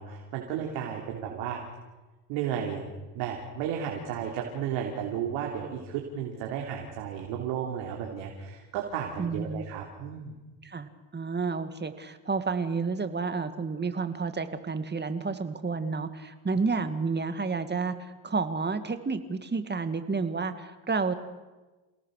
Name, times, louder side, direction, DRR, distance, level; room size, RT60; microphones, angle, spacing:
voice 1, 0.0-1.6 2.3-2.8 3.1-10.4, right 8 dB, 75° right, 0 dB, 3.6 m, -33 dB
voice 2, 9.2-9.6 10.6-21.1, right 4 dB, 20° right, 9 dB, 2.2 m, -30 dB
28.5 x 17.5 x 6.7 m, 1.2 s
supercardioid pair, 85°, 48 cm